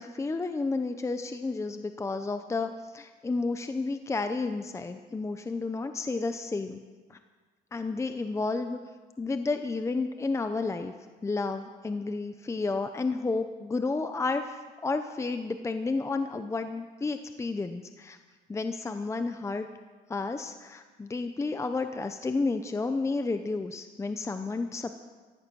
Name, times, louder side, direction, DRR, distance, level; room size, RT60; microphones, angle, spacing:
voice 1, 0.0-6.8 7.1-7.2 7.7-8.8 9.2-10.9 11.2-18.2 18.5-19.7 20.1-24.9, left 3 dB, 15° left, 8 dB, 0.7 m, -31 dB
14.5 x 13.0 x 6.3 m, 1.4 s
cardioid pair, 110°, 17 cm